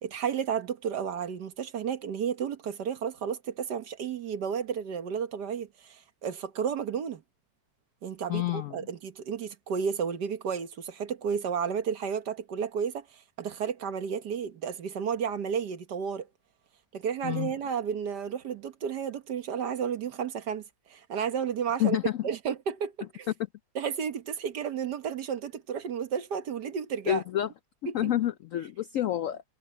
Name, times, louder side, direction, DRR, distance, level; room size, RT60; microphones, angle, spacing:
voice 1, 0.0-7.2 8.0-16.3 16.9-20.6 20.9-22.0 22.2-23.3 23.8-27.2 27.9-28.1, right 7 dB, 70° right, 1.8 m, -32 dB
voice 2, 8.3-8.9 17.2-17.5 21.8-22.3 27.1-27.5 27.9-29.4, left 12 dB, 75° left, 0.7 m, -28 dB
omnidirectional pair, 1.9 m